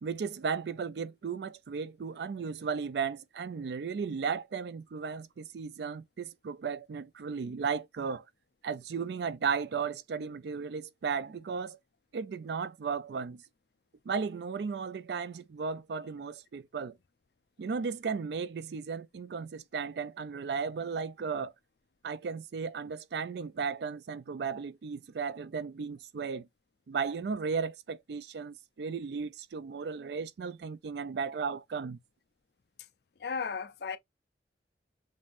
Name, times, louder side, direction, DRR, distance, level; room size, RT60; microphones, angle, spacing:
voice 1, 0.0-8.2 8.6-11.8 12.1-13.4 14.1-17.0 17.6-21.5 22.0-26.5 26.9-32.0, right 5 dB, 65° right, 0.4 m, -35 dB
voice 2, 33.2-34.0, left 5 dB, 65° left, 0.5 m, -34 dB
5.2 x 2.6 x 2.5 m
head